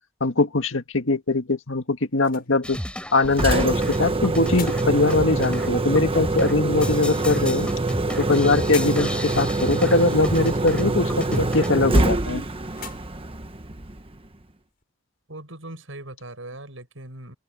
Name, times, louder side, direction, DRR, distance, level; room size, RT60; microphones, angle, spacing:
voice 1, 0.2-2.8 3.1-7.7 8.2-12.4, left 2 dB, 75° left, 2.0 m, -21 dB
sound 1, 1.4-14.8, left 9 dB, 50° left, 7.1 m, -49 dB
sound 2, 2.6-12.1, left 1 dB, 5° left, 7.9 m, -34 dB
Engine, 3.2-14.2, right 2 dB, 30° right, 1.3 m, -25 dB
voice 2, 15.3-17.3, right 1 dB, 80° right, 7.0 m, -39 dB
head